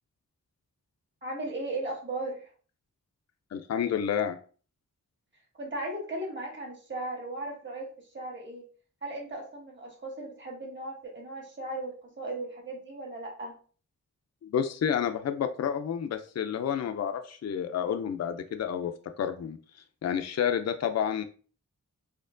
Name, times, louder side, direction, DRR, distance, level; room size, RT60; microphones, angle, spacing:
voice 1, 1.2-2.5 5.6-7.9 8.1-8.6 9.0-13.5, right 2 dB, 35° right, -2 dB, 1.5 m, -37 dB
voice 2, 3.5-4.4 14.4-19.6 20.0-21.2, left 8 dB, 55° left, 8 dB, 0.4 m, -30 dB
4.3 x 2.7 x 2.5 m, 0.40 s
wide cardioid pair, 70°, 32 cm